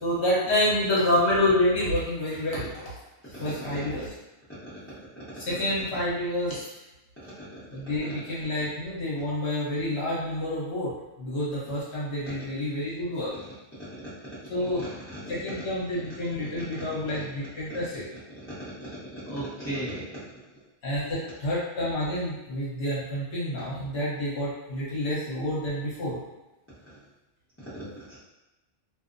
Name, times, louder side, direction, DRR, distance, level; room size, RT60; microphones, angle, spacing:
voice 1, 0.0-2.9 3.2-4.1 5.3-6.7 7.7-10.9 11.2-13.4 14.5-14.8 15.3-18.0 20.8-26.2, left 1 dB, 60° left, -8 dB, 1.1 m, -28 dB
voice 2, 19.2-20.4 27.6-27.9, right 1 dB, 15° left, -13 dB, 0.6 m, -35 dB
2.7 x 2.0 x 2.5 m, 1.0 s
omnidirectional pair, 1.4 m